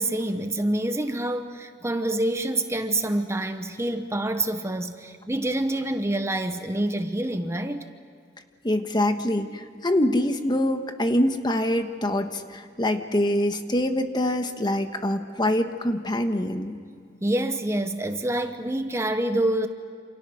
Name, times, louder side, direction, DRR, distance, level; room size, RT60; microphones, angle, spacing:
voice 1, 0.0-7.9 17.2-19.7, right 1 dB, 15° right, 7 dB, 1.1 m, -27 dB
voice 2, 8.6-16.8, left 1 dB, 25° left, 7 dB, 1.4 m, -25 dB
28.5 x 28.0 x 6.4 m, 2.2 s
head